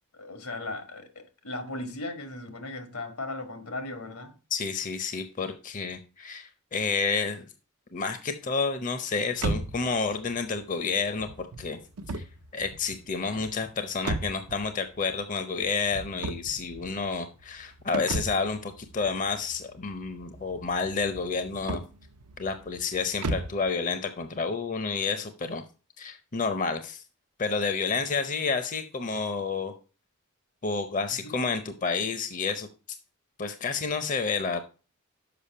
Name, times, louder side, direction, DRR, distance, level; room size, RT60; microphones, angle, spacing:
voice 1, 0.1-4.3 31.1-31.4, left 2 dB, 80° left, 1.6 m, -37 dB
voice 2, 4.5-7.4 7.9-11.8 12.1-12.2 12.5-21.8 22.4-25.6 26.0-27.0 27.4-29.7 30.6-32.7 33.4-34.6, left 4 dB, 35° left, 0.6 m, -30 dB
sound 1, 9.3-23.7, right 2 dB, 85° right, 0.7 m, -37 dB
6.9 x 5.4 x 5.4 m
head